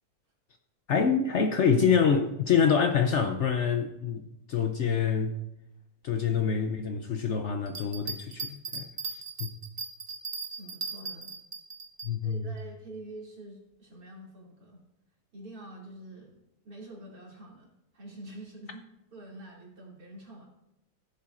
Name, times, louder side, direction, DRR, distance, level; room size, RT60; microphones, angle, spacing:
voice 1, 0.9-4.2 4.5-5.4 6.0-9.5 12.0-12.4, left 6 dB, 60° left, 0.8 m, -26 dB
Bell, 7.7-12.1 12.6-12.7, right 4 dB, 40° right, 1.0 m, -37 dB
voice 2, 10.6-11.3 12.2-14.8 15.3-16.4 16.6-18.8 19.1-20.4, right 1 dB, 70° right, 3.1 m, -46 dB
16.0 x 7.2 x 2.5 m
omnidirectional pair, 1.6 m